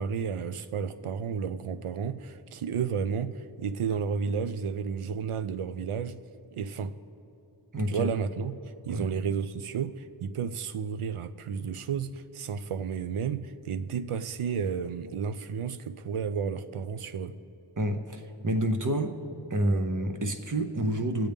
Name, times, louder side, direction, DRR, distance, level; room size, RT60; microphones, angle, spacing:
voice 1, 0.0-6.2 6.5-7.0 7.9-17.4, right 6 dB, 80° right, 0.5 m, -32 dB
voice 2, 7.7-8.1 8.9-9.1 17.8-19.1 19.5-21.3, right 1 dB, 40° right, 0.9 m, -28 dB
20.0 x 7.8 x 3.5 m
wide cardioid pair, 40°, 50 cm